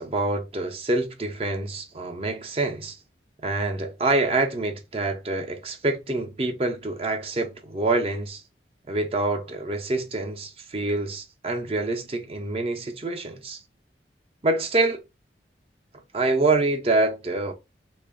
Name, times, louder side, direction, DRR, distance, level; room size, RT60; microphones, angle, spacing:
voice 1, 0.0-3.0 3.4-8.4 8.9-13.6 14.4-15.0 16.1-17.5, right 2 dB, 35° right, 0.5 m, -26 dB
3.3 x 2.4 x 3.6 m
head